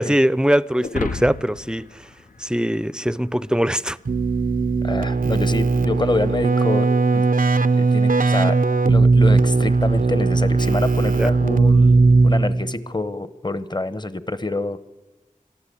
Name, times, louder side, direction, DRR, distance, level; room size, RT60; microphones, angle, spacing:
voice 1, 0.0-1.9 2.4-4.0 11.2-11.3, equal, 5° right, 0.6 m, -21 dB
sound 1, 0.8-3.3, left 3 dB, 75° left, 0.8 m, -32 dB
Keyboard (musical), 4.1-12.8, right 3 dB, 90° right, 0.7 m, -18 dB
voice 2, 4.8-7.3 7.7-8.6 8.9-14.8, left 2 dB, 30° left, 1.0 m, -26 dB
23.0 x 14.0 x 8.4 m
wide cardioid pair, 50°, 14 cm